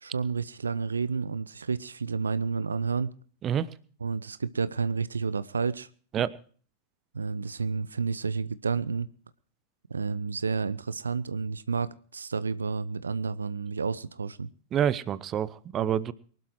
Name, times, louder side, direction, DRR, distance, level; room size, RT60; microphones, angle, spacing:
voice 1, 0.0-3.1 4.0-5.9 7.1-9.1 9.9-14.5, right 5 dB, 75° right, 0.6 m, -30 dB
voice 2, 14.7-16.1, right 9 dB, 30° right, 0.8 m, -27 dB
23.5 x 12.0 x 3.1 m
figure-of-eight pair, 90°, 0 cm